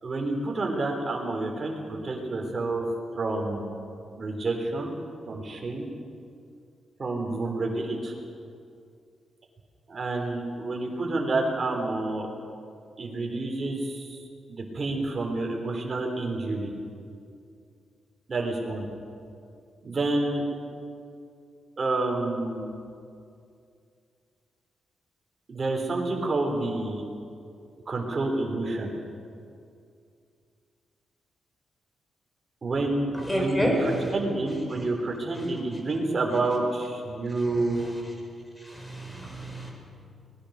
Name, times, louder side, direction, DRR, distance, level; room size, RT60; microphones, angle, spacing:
voice 1, 0.0-2.8 3.1-3.8 4.2-5.0 5.3-5.9 7.0-8.1 9.9-12.3 13.0-14.2 14.5-16.7 18.3-18.9 19.8-20.4 21.8-22.8 25.5-27.0 27.9-28.9 32.6-38.0, right 2 dB, 35° right, 1 dB, 3.9 m, -29 dB
voice 2, 33.1-34.1 34.7-34.8 37.4-37.9 38.7-39.7, equal, 10° left, 0 dB, 5.3 m, -29 dB
24.0 x 20.0 x 6.6 m, 2.4 s
wide cardioid pair, 130°, 0 cm